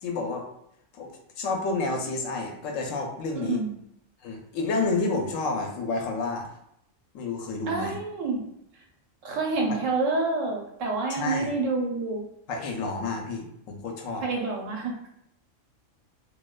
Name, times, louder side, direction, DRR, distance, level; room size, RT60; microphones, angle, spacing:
voice 1, 0.0-0.4 0.9-1.1 1.4-3.6 4.2-6.5 7.1-8.0 11.1-11.5 12.5-14.2, left 3 dB, 85° left, 2 dB, 1.0 m, -30 dB
voice 2, 3.3-3.7 7.7-8.5 9.2-12.2 14.2-15.1, right 3 dB, 85° right, 0 dB, 1.0 m, -28 dB
2.6 x 2.1 x 2.3 m, 0.76 s
omnidirectional pair, 1.3 m